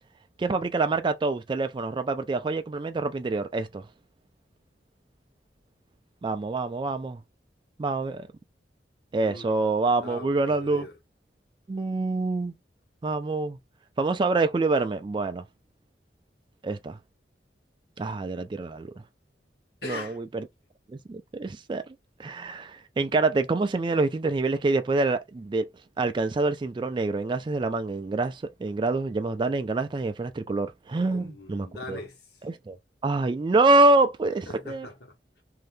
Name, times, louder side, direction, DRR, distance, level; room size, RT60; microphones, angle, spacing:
voice 1, 0.4-3.8 6.2-7.2 7.8-8.3 9.1-10.9 11.7-12.5 13.0-13.6 14.0-15.4 16.6-17.0 18.0-18.9 19.8-20.4 20.9-21.8 22.2-25.7 26.0-32.0 32.4-32.8 33.0-34.9, right 3 dB, 25° right, 0.3 m, -26 dB
voice 2, 9.2-9.6 10.0-11.0 19.8-20.2 31.1-32.4 34.5-35.4, left 3 dB, 65° left, 1.2 m, -41 dB
2.7 x 2.3 x 3.4 m
head